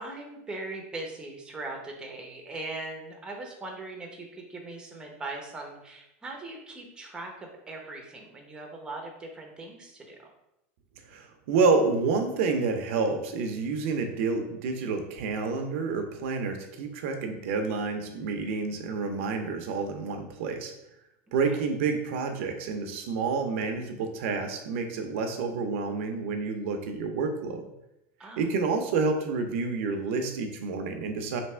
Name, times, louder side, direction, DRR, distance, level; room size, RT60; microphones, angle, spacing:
voice 1, 0.0-10.3 21.5-21.6 28.2-28.5, right 2 dB, 10° right, 1 dB, 0.8 m, -40 dB
voice 2, 11.1-20.7 21.3-27.6 28.4-31.4, right 4 dB, 70° right, 5 dB, 0.6 m, -29 dB
3.3 x 2.8 x 4.3 m, 0.86 s
supercardioid pair, 140°, 7 cm